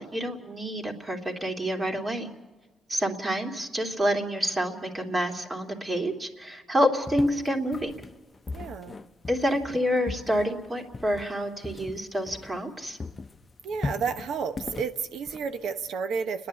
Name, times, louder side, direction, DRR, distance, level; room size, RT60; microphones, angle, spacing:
voice 1, 0.0-2.3 2.9-8.0 9.3-13.0, equal, 25° right, 3 dB, 2.8 m, -28 dB
sound 1, 7.1-12.7 13.0-15.9, left 3 dB, 30° left, 0.7 m, -39 dB
voice 2, 8.5-9.0 13.6-16.5, right 6 dB, 70° right, 10 dB, 1.1 m, -31 dB
29.5 x 11.0 x 8.3 m, 1.3 s
cardioid pair, 90°, 0 cm